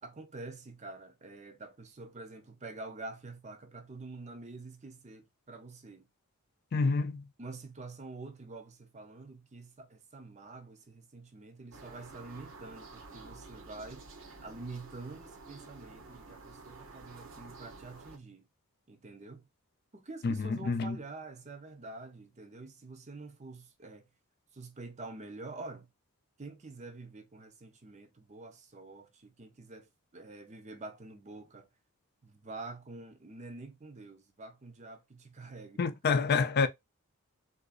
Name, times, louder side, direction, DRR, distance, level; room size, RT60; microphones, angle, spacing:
voice 1, 0.0-6.1 7.4-14.1 14.4-18.5 18.9-19.5 19.9-24.1 24.5-25.9 26.4-31.7 32.2-35.8, right 3 dB, 30° right, 0.6 m, -47 dB
voice 2, 6.7-7.3 20.2-21.0 35.8-36.7, left 4 dB, 45° left, 0.4 m, -28 dB
sound 1, 11.7-18.2, right 3 dB, 60° right, 0.8 m, -51 dB
3.7 x 2.5 x 2.4 m
head